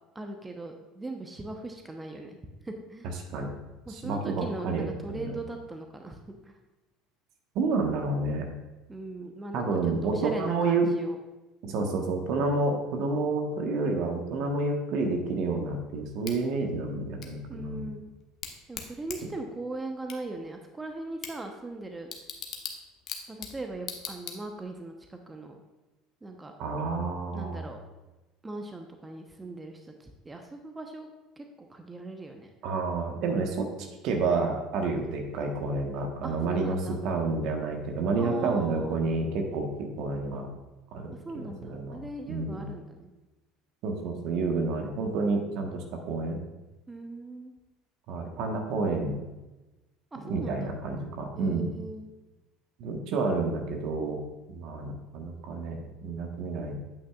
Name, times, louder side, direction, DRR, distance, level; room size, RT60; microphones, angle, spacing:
voice 1, 0.1-2.4 2.6-3.1 3.9-6.2 6.4-6.5 8.9-11.2 17.5-18.1 18.7-22.1 23.3-25.6 26.2-26.5 27.3-27.8 28.4-31.1 31.4-32.5 36.2-37.0 38.2-39.1 41.2-43.1 46.9-47.5 50.1-50.7 51.4-52.1, right 2 dB, 15° right, 4 dB, 0.9 m, -39 dB
voice 2, 3.9-5.4 7.5-8.5 9.5-10.9 11.6-17.9 26.6-27.6 32.6-40.5 40.9-42.0 42.3-42.7 43.8-46.4 48.1-49.2 50.2-51.7 52.8-54.2 54.5-56.7, right 3 dB, 60° right, 3 dB, 1.3 m, -29 dB
Bicycle / Tick, 16.2-24.8, left 6 dB, 50° left, 1.1 m, -43 dB
8.7 x 8.4 x 2.4 m, 1.1 s
hypercardioid pair, 70°, 0 cm